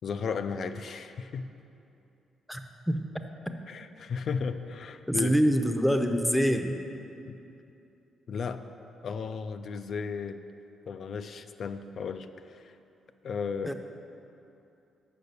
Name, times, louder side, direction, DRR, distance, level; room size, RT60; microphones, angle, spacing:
voice 1, 0.0-1.5 3.7-5.4 7.3-7.4 8.3-8.6 9.0-10.4 10.9-12.8 13.2-13.7, left 5 dB, 60° left, 9 dB, 0.4 m, -34 dB
voice 2, 5.1-6.8 13.6-13.7, equal, 5° left, 6 dB, 0.6 m, -25 dB
6.7 x 5.6 x 6.7 m, 2.8 s
cardioid pair, 75°, 0 cm